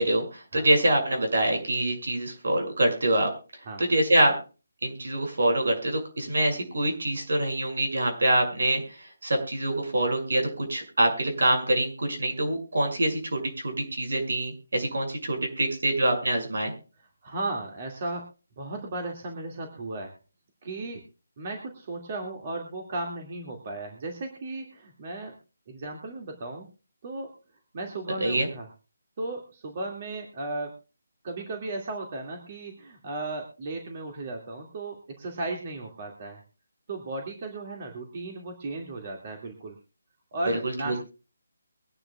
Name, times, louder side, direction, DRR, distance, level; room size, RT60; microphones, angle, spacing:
voice 1, 0.0-3.3 3.8-4.3 4.8-8.8 9.2-16.7 28.2-28.5 40.5-41.0, right 1 dB, 75° right, 3 dB, 6.2 m, -25 dB
voice 2, 17.2-18.3 18.6-20.1 20.6-21.0 21.4-25.3 25.7-26.7 27.0-27.3 27.7-28.7 29.2-30.7 31.2-36.4 36.9-39.8 40.3-41.0, right 2 dB, 30° right, 1 dB, 2.3 m, -35 dB
23.5 x 10.0 x 2.4 m, 0.33 s
hypercardioid pair, 170°, 0 cm